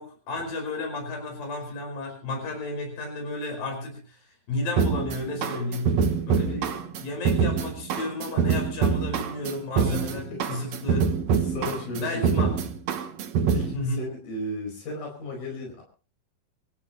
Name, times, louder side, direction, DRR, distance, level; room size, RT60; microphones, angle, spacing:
voice 1, 0.0-4.2 4.5-6.0 6.3-11.1 11.5-11.7 12.0-12.5 13.7-14.1, left 2 dB, 75° left, 3 dB, 6.8 m, -33 dB
sound 1, 4.8-13.8, right 6 dB, 60° right, 2.2 m, -25 dB
voice 2, 5.9-6.6 10.1-10.7 11.4-12.4 13.5-15.8, left 1 dB, 90° left, 1 dB, 6.7 m, -35 dB
26.0 x 14.5 x 3.1 m, 0.38 s
omnidirectional pair, 4.1 m